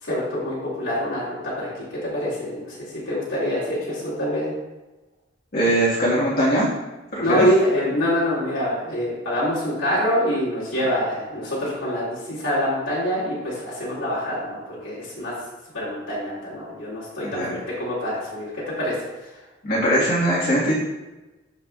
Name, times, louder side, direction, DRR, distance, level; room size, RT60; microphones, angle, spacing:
voice 1, 0.0-4.5 7.2-15.3 15.7-18.9, equal, 80° left, -10 dB, 2.5 m, -25 dB
voice 2, 5.5-6.7 7.1-7.5 17.2-17.5 19.6-20.7, right 1 dB, 50° left, -8 dB, 1.7 m, -21 dB
12.0 x 4.8 x 2.4 m, 1.1 s
head